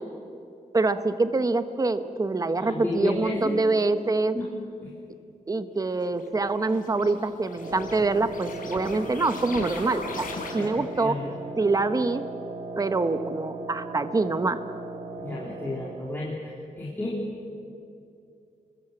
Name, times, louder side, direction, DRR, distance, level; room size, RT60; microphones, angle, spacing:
voice 1, 0.7-4.4 5.5-10.3 10.5-11.2 11.6-12.2 12.8-14.6, right 3 dB, 25° right, 10 dB, 1.0 m, -25 dB
voice 2, 2.6-3.6 4.3-4.5 4.8-4.9 10.6-11.3 15.2-17.2, left 2 dB, 15° left, -5 dB, 3.1 m, -32 dB
sound 1, 6.1-11.0, left 4 dB, 75° left, 4.2 m, -39 dB
Wind instrument woodwind instrument, 7.6-16.1, right 3 dB, 70° right, 3.9 m, -38 dB
27.0 x 21.5 x 7.9 m, 2.6 s
wide cardioid pair, 160°, 14 cm